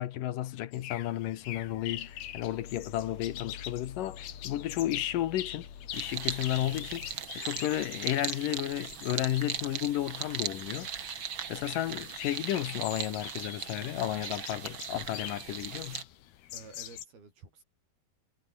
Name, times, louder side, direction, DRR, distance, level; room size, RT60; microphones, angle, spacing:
voice 1, 0.0-5.7 5.9-7.0 7.3-16.0, left 13 dB, 70° left, 2.6 m, -33 dB
sound 1, 0.7-17.1, left 12 dB, 85° left, 3.6 m, -45 dB
sound 2, 1.4-7.2, left 7 dB, 50° left, 3.7 m, -48 dB
sound 3, 5.9-16.0, right 7 dB, 45° right, 1.9 m, -39 dB
voice 2, 16.5-17.6, right 4 dB, 75° right, 9.8 m, -51 dB
omnidirectional pair, 4.4 m